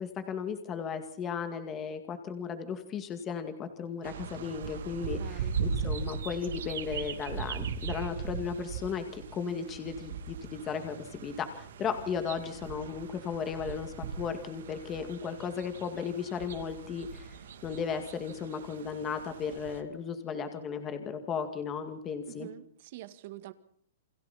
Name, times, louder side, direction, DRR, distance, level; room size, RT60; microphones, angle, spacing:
voice 1, 0.0-17.4 17.6-22.5, left 6 dB, 15° left, 7 dB, 2.2 m, -35 dB
sound 1, 4.0-19.8, right 6 dB, 70° right, 2.9 m, -39 dB
voice 2, 5.2-5.5 22.3-23.5, right 15 dB, 40° right, 11 dB, 2.1 m, -45 dB
29.5 x 25.5 x 4.3 m, 0.62 s
hypercardioid pair, 175°, 0 cm